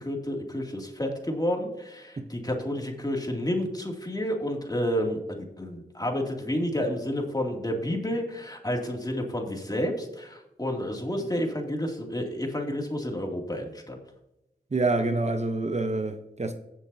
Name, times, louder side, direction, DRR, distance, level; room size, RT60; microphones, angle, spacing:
voice 1, 0.0-14.0, equal, 20° left, 2.5 m, -30 dB
voice 2, 14.7-16.5, right 2 dB, 40° right, 0.9 m, -26 dB
16.5 x 7.3 x 2.8 m
cardioid pair, 55°, 17 cm